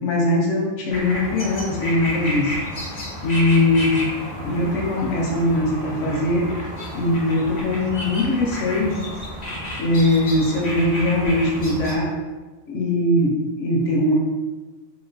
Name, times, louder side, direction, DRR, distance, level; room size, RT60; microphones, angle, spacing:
voice 1, 0.0-2.6 2.9-4.0 4.4-6.5 6.9-9.0 9.8-12.1 12.7-14.1, left 1 dB, 65° left, -2 dB, 0.9 m, -21 dB
sound 1, 0.9-12.0, equal, 45° left, 0.5 m, -31 dB
2.9 x 2.6 x 2.6 m, 1.2 s
omnidirectional pair, 1.5 m